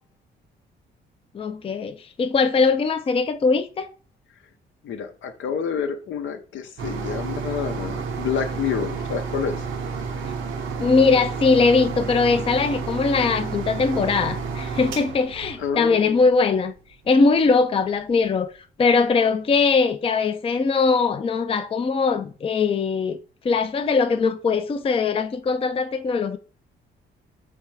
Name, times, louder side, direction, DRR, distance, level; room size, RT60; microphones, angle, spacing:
voice 1, 1.3-3.9 10.8-16.7 17.1-18.5 18.8-23.2 23.4-26.4, left 4 dB, 30° left, 0.4 m, -21 dB
voice 2, 4.8-9.6 15.6-16.3, left 7 dB, 75° left, 0.7 m, -28 dB
sound 1, 6.8-16.3 16.9-17.0 17.4-17.5, right 5 dB, 80° right, 0.8 m, -31 dB
3.4 x 3.3 x 4.7 m
cardioid pair, 90°, 20 cm